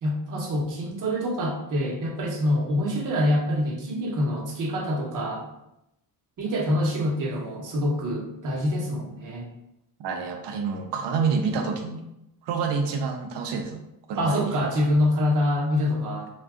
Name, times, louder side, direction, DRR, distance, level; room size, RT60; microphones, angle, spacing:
voice 1, 0.0-5.5 6.4-9.5 14.2-16.3, left 1 dB, 50° right, -1 dB, 0.8 m, -25 dB
voice 2, 10.0-12.0 12.4-13.8 14.1-14.7, right 5 dB, 85° right, 4 dB, 0.6 m, -28 dB
2.6 x 2.3 x 3.4 m, 0.85 s
cardioid pair, 115°, 41 cm